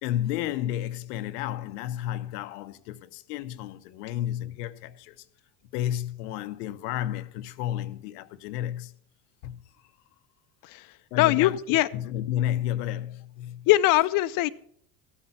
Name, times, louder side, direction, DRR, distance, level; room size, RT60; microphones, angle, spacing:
voice 1, 0.0-5.2 5.7-9.0 9.4-9.6 11.1-13.7, left 12 dB, 90° left, 0.8 m, -32 dB
voice 2, 11.2-11.9 13.7-14.5, left 16 dB, 45° left, 0.6 m, -21 dB
14.0 x 8.2 x 5.7 m
supercardioid pair, 105°, 46 cm